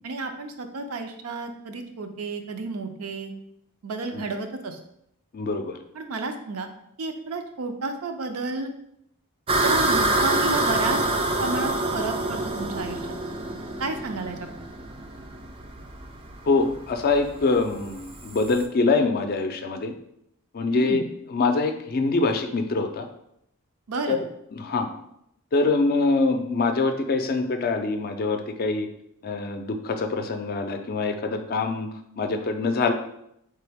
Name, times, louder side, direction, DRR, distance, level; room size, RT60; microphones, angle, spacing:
voice 1, 0.0-3.3 3.8-4.8 5.9-6.7 7.0-8.7 9.6-11.0 11.4-13.0 13.8-14.5 20.7-21.0 23.9-24.2, right 3 dB, 80° right, 6 dB, 0.5 m, -31 dB
voice 2, 5.3-5.8 16.5-19.9 20.5-21.0 21.3-23.0 24.1-24.2 24.5-24.9 25.5-28.9 29.2-31.9 32.2-32.9, left 3 dB, 45° left, 6 dB, 0.4 m, -24 dB
sound 1, 9.5-18.6, right 2 dB, 25° right, 0.3 m, -26 dB
3.8 x 3.3 x 3.4 m, 0.76 s
head